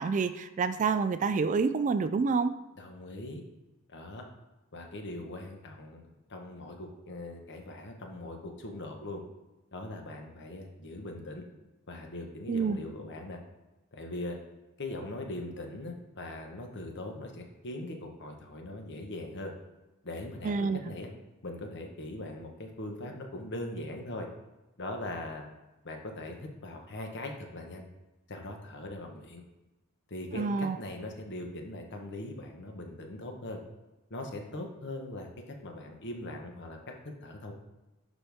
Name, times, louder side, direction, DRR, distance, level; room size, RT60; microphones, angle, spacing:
voice 1, 0.0-2.5 12.5-12.8 20.4-20.8 30.3-30.8, right 5 dB, 35° right, 12 dB, 0.3 m, -28 dB
voice 2, 2.8-3.4 3.9-4.2 4.7-9.2 9.7-11.4 11.9-13.4 13.9-14.4 14.8-19.5 20.0-21.1 21.4-24.3 24.8-25.5 25.8-27.8 28.3-29.4 30.1-33.6 34.1-36.8 37.2-37.5, left 1 dB, 55° left, 2 dB, 1.2 m, -40 dB
11.0 x 4.1 x 3.5 m, 1.0 s
head